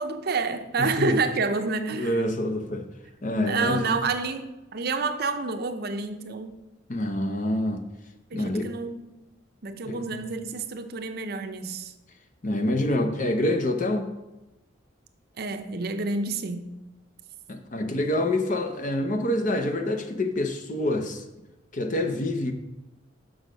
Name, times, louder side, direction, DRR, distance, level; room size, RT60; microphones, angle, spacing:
voice 1, 0.0-2.2 3.4-6.6 8.3-9.2 9.6-11.9 15.4-16.7, right 4 dB, 50° right, 8 dB, 0.6 m, -29 dB
voice 2, 0.8-1.2 1.9-2.8 3.2-3.9 6.9-7.8 8.3-8.7 9.8-10.2 12.4-14.1 17.5-21.2 21.7-22.5, left 1 dB, 40° left, 6 dB, 0.7 m, -26 dB
6.3 x 6.3 x 5.1 m, 1.0 s
head